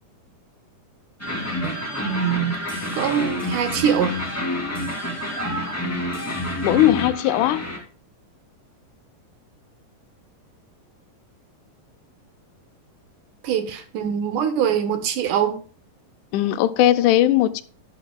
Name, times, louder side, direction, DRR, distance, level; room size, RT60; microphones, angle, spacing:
sound 1, 1.2-7.8, left 1 dB, 5° left, 1.3 m, -28 dB
voice 1, 1.6-2.6 2.9-4.1 13.4-15.6, right 8 dB, 75° right, 2.2 m, -23 dB
voice 2, 6.6-7.6 16.3-17.6, left 13 dB, 80° left, 1.8 m, -19 dB
12.0 x 10.5 x 2.2 m
omnidirectional pair, 4.0 m